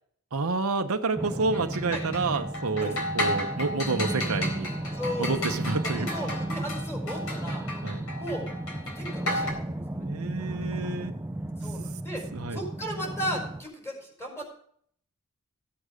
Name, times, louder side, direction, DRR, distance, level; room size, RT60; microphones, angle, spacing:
voice 1, 0.3-4.7 5.2-6.4 7.8-8.0 10.0-11.1 12.3-12.6, right 3 dB, 75° right, 6 dB, 0.9 m, -29 dB
sound 1, 1.1-13.6, right 1 dB, 10° right, 0.6 m, -34 dB
sound 2, 1.5-9.5, left 1 dB, 75° left, 3.9 m, -34 dB
voice 2, 4.9-5.6 5.8-7.6 8.2-8.5 8.9-10.1 11.6-12.2 12.5-14.4, equal, 15° left, -1 dB, 4.7 m, -36 dB
15.0 x 8.2 x 5.0 m, 0.64 s
head